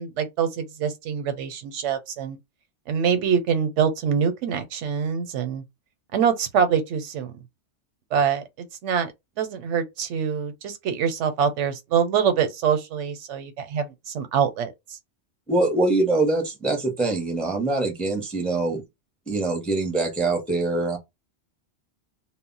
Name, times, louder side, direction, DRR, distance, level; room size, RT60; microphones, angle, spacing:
voice 1, 0.0-2.4 2.9-5.6 6.1-7.4 8.1-9.1 9.4-14.7, right 7 dB, 90° right, 0.9 m, -25 dB
voice 2, 15.5-18.8 19.3-21.0, right 2 dB, ahead, 0.5 m, -24 dB
2.1 x 2.0 x 3.8 m
omnidirectional pair, 1.2 m